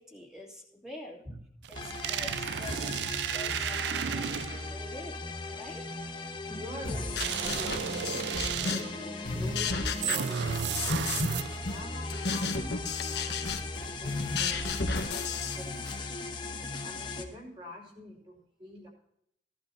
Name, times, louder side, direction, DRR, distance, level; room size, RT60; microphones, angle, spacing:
voice 1, 0.0-1.2 1.7-2.9 3.3-4.3 4.7-5.2 5.5-6.0, left 1 dB, 5° right, -2 dB, 2.7 m, -46 dB
sound 1, 1.6-4.8 7.2-9.0 10.0-11.8, right 8 dB, 75° right, 0.4 m, -33 dB
sound 2, 1.7-17.2, left 2 dB, 25° left, 1.2 m, -38 dB
voice 2, 2.7-3.0 6.4-10.9 11.2-13.4 14.0-16.2 16.8-18.9, left 1 dB, 30° right, -1 dB, 4.9 m, -46 dB
sound 3, 6.9-9.0 9.2-11.4 11.7-16.0, left 4 dB, 70° left, 1.3 m, -33 dB
16.5 x 11.5 x 2.8 m, 0.72 s
head